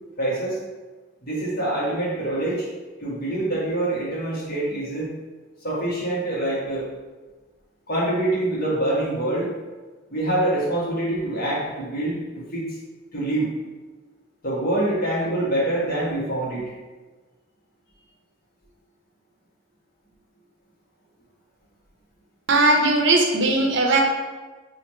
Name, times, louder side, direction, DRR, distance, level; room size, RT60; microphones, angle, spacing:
voice 1, 0.2-0.6 1.2-2.7 3.0-5.1 5.6-6.8 7.9-9.5 10.1-12.8 13.1-13.5 14.4-16.6, right 1 dB, 50° left, -6 dB, 1.2 m, -25 dB
voice 2, 22.5-24.0, right 2 dB, 60° right, 1 dB, 0.6 m, -18 dB
3.1 x 2.4 x 4.2 m, 1.3 s
head